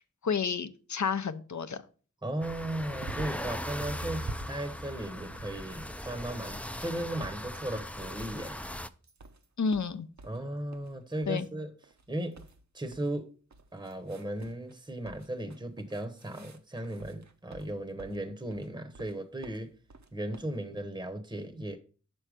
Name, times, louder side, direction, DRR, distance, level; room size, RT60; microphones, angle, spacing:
voice 1, 0.0-1.8 9.6-10.1 11.3-11.5, left 5 dB, 65° left, 0.6 m, -31 dB
voice 2, 2.2-8.6 10.2-11.7 12.1-12.5 12.7-13.3 13.7-19.7 20.1-21.8, right 1 dB, 15° right, 0.8 m, -36 dB
sound 1, 2.4-8.9, equal, 5° left, 0.3 m, -39 dB
sound 2, 2.8-3.5 3.8-6.4 6.8-7.4 7.8-8.4 8.7-10.4 10.7-11.0 11.2-11.5 11.8-13.2 13.5-14.8 15.0-18.2 18.5-19.2 19.4-20.5, right 3 dB, 60° right, 0.7 m, -47 dB
6.2 x 4.4 x 4.9 m
wide cardioid pair, 45°, 31 cm